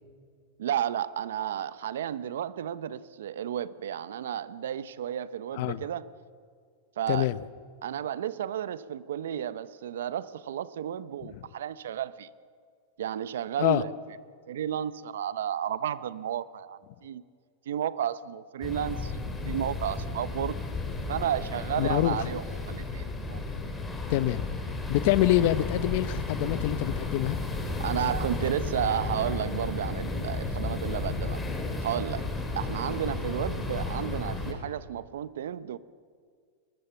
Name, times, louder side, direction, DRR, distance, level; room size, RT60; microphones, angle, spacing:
voice 1, 0.6-6.1 7.0-7.3 7.8-12.3 13.0-13.9 14.5-17.2 17.7-20.5 21.1-23.4 27.8-31.4 31.8-32.3 32.5-35.8, right 10 dB, 90° right, 16 dB, 0.9 m, -32 dB
sound 1, 18.6-34.5, left 3 dB, 5° left, 2.9 m, -33 dB
voice 2, 21.7-22.3 24.1-24.5 24.9-27.4, left 15 dB, 50° left, 16 dB, 0.8 m, -25 dB
23.5 x 20.5 x 7.1 m, 2.1 s
supercardioid pair, 165°, 0 cm